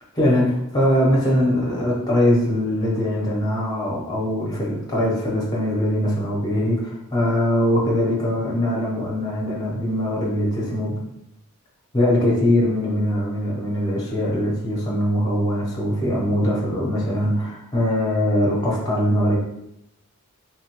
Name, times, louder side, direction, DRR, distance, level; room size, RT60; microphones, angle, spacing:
voice 1, 0.1-11.0 11.9-19.4, equal, 15° left, -4 dB, 0.6 m, -22 dB
3.1 x 2.2 x 2.9 m, 0.81 s
head